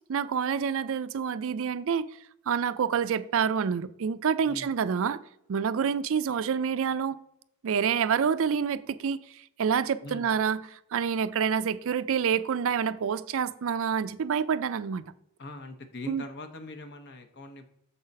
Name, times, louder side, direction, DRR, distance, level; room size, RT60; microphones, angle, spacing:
voice 1, 0.1-2.1 2.5-5.2 5.5-7.2 7.6-15.0 16.1-16.2, right 7 dB, 65° right, 0.4 m, -27 dB
voice 2, 10.0-10.3 15.4-17.6, left 1 dB, 55° left, 1.0 m, -42 dB
7.0 x 3.9 x 5.3 m
head